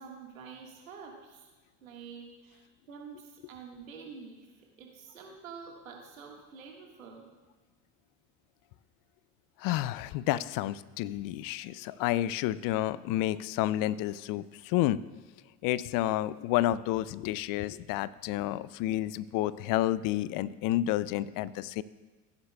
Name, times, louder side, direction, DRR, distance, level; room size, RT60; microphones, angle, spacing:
voice 1, 0.0-1.5 1.8-4.5 4.8-7.3, right 5 dB, 90° right, 0 dB, 1.7 m, -47 dB
voice 2, 9.6-15.0 15.6-21.8, left 14 dB, 55° left, 18 dB, 0.5 m, -30 dB
15.5 x 9.6 x 2.3 m, 1.3 s
hypercardioid pair, 65°, 40 cm